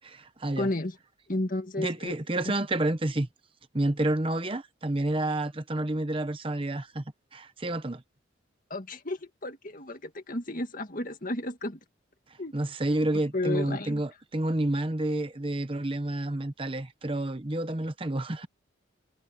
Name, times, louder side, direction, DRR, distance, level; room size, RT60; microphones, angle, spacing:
voice 1, 0.0-0.7 1.8-3.3 3.7-7.0 7.3-8.0 12.5-18.5, right 1 dB, 25° right, 0.9 m, -29 dB
voice 2, 0.6-1.0 1.3-2.2 2.5-2.6 8.7-11.8 12.4-12.5 13.3-14.0, left 2 dB, 40° left, 2.1 m, -32 dB
head